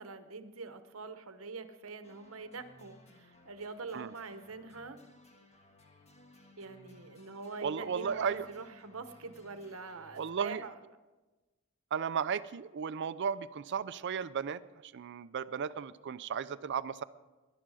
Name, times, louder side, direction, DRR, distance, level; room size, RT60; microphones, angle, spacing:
voice 1, 0.0-5.0 6.6-10.8, right 4 dB, 70° right, 10 dB, 1.0 m, -44 dB
sound 1, 2.0-10.3, left 1 dB, 30° left, 1.6 m, -60 dB
voice 2, 7.6-8.5 10.1-10.6 11.9-17.0, right 6 dB, 55° right, 14 dB, 0.4 m, -35 dB
19.0 x 11.5 x 4.9 m, 1.2 s
head